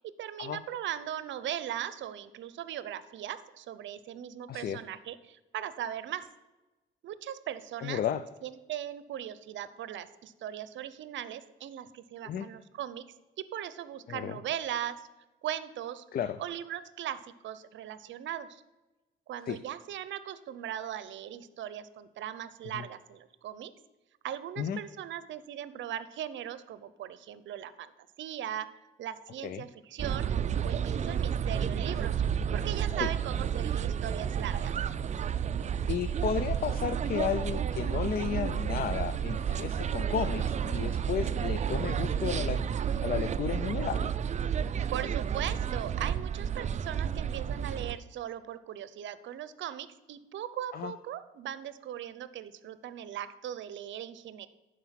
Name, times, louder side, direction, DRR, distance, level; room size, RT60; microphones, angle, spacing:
voice 1, 0.0-6.3 7.0-8.0 8.4-13.0 13.4-15.1 15.4-16.0 16.4-18.6 19.3-23.7 24.2-27.9 28.2-28.7 29.0-30.3 30.6-32.2 32.5-34.7 44.9-54.5, right 11 dB, 70° right, 15 dB, 0.7 m, -39 dB
voice 2, 4.5-4.8 7.8-8.2 12.2-12.5 14.1-14.4 16.1-16.4 19.5-19.6 22.7-22.8 24.6-24.8 29.4-29.7 33.0-33.1 35.9-42.6 43.0-44.1 50.7-50.9, left 8 dB, 50° left, 12 dB, 0.5 m, -33 dB
sound 1, 30.0-48.0, right 8 dB, 35° right, 0.4 m, -31 dB
11.5 x 4.8 x 5.8 m, 1.1 s
cardioid pair, 90°, 20 cm